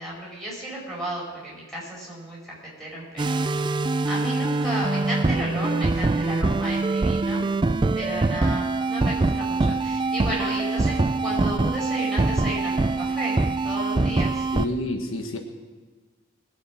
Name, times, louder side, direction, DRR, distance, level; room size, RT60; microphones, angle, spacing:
voice 1, 0.0-7.4 7.9-14.5, equal, ahead, -6 dB, 5.3 m, -34 dB
sound 1, 3.2-14.7, right 3 dB, 25° right, 0.4 m, -24 dB
voice 2, 14.5-15.4, left 1 dB, 85° left, 4 dB, 1.6 m, -29 dB
21.0 x 7.9 x 6.1 m, 1.4 s
head